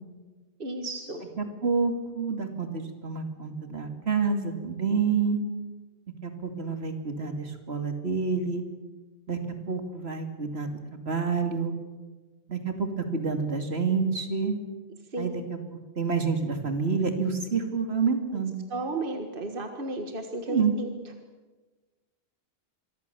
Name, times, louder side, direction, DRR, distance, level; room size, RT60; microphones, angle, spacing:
voice 1, 0.6-1.2 15.1-15.3 18.7-20.9, right 2 dB, 55° right, 5 dB, 1.9 m, -33 dB
voice 2, 1.4-5.4 6.2-8.6 9.3-9.4 9.7-11.7 12.5-14.6 15.2-15.6 16.0-18.6 20.5-20.7, right 5 dB, 75° right, 5 dB, 2.9 m, -28 dB
26.0 x 23.5 x 7.1 m, 1.3 s
omnidirectional pair, 1.1 m